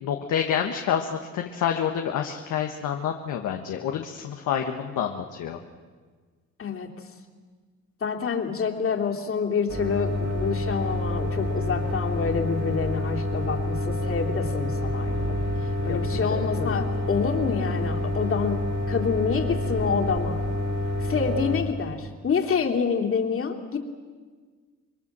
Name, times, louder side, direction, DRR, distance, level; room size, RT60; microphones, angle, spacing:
voice 1, 0.0-5.6 15.9-16.0 16.3-16.8, left 8 dB, 85° left, 3 dB, 1.5 m, -28 dB
voice 2, 6.6-6.9 8.0-15.3 15.8-18.6 18.9-20.4 21.0-23.8, left 6 dB, 45° left, 1 dB, 3.0 m, -27 dB
sound 1, 9.7-21.6, left 1 dB, 65° right, 7.3 m, -28 dB
26.5 x 22.0 x 7.5 m, 1.5 s
cardioid pair, 90°, 30 cm